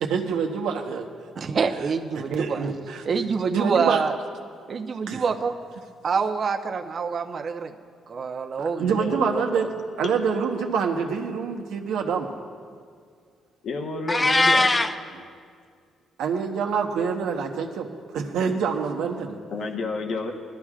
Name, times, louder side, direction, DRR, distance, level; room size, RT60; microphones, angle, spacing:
voice 1, 0.0-1.1 2.3-3.0 3.5-4.0 5.1-5.2 8.6-9.7 10.0-12.3 15.1-15.2 16.2-17.9 18.1-19.4, right 6 dB, 85° right, 3 dB, 1.1 m, -26 dB
voice 2, 1.4-2.7 3.1-4.1 4.7-5.6 6.0-7.7 8.1-9.1, right 5 dB, 50° right, 5 dB, 0.8 m, -26 dB
voice 3, 8.8-9.4 10.0-10.1 13.6-14.7 19.5-20.3, left 3 dB, 65° left, 3 dB, 1.1 m, -30 dB
Meow, 14.1-14.9, left 2 dB, 20° left, 0.5 m, -19 dB
20.5 x 12.5 x 2.5 m, 2.1 s
cardioid pair, 90°, 0 cm